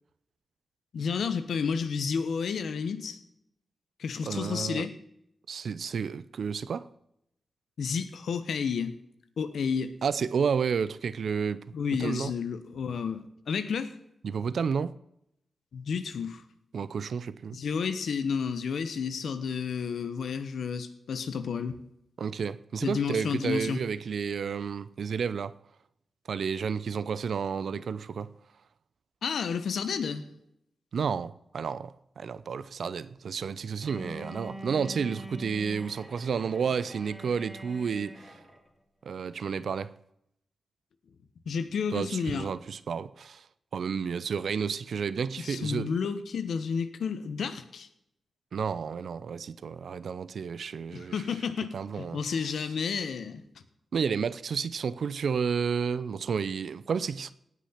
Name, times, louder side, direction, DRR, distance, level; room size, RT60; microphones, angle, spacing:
voice 1, 0.9-3.2 4.0-5.0 7.8-9.0 9.4-9.9 11.7-13.9 15.7-16.4 17.5-21.8 22.8-23.8 29.2-30.3 41.5-42.5 45.4-47.9 50.9-53.4, left 6 dB, 80° left, 1.1 m, -31 dB
voice 2, 4.3-4.9 5.5-6.9 10.0-11.6 12.0-12.3 14.2-14.9 16.7-17.6 22.2-25.5 26.3-28.3 30.9-38.3 39.0-39.9 41.9-43.5 43.7-46.0 48.5-51.2 51.7-52.6 53.9-57.3, right 6 dB, 75° right, 0.6 m, -31 dB
Bowed string instrument, 33.8-38.7, equal, 5° right, 2.3 m, -44 dB
18.0 x 6.3 x 5.7 m
cardioid pair, 80°, 0 cm